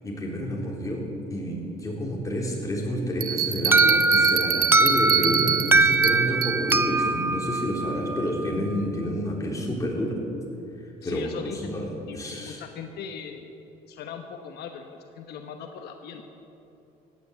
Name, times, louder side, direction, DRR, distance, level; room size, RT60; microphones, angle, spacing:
voice 1, 0.0-10.2 11.0-12.6, equal, 20° left, -2 dB, 3.7 m, -29 dB
Bell, 3.2-6.9, right 10 dB, 60° right, 0.9 m, -26 dB
Alarm, 3.7-8.5, right 2 dB, 15° right, 0.5 m, -22 dB
voice 2, 11.0-11.8 12.1-13.5 13.9-16.2, left 7 dB, 75° left, 5 dB, 1.1 m, -39 dB
15.5 x 9.8 x 8.2 m, 2.8 s
cardioid pair, 110°, 17 cm